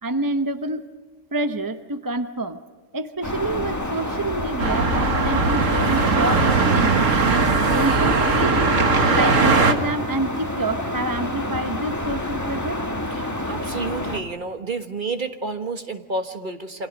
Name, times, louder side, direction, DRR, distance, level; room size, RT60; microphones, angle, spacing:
voice 1, 0.0-0.9 1.3-2.6 2.9-7.0 7.5-8.7 9.1-12.8, right 2 dB, 20° right, 8 dB, 0.8 m, -27 dB
sound 1, 3.2-14.2, left 1 dB, 15° left, 1.7 m, -28 dB
sound 2, 4.6-9.7, right 4 dB, 85° right, 2.0 m, -19 dB
voice 2, 13.1-16.9, right 3 dB, 40° right, 6 dB, 1.6 m, -30 dB
28.5 x 26.5 x 5.3 m, 1.4 s
omnidirectional pair, 1.3 m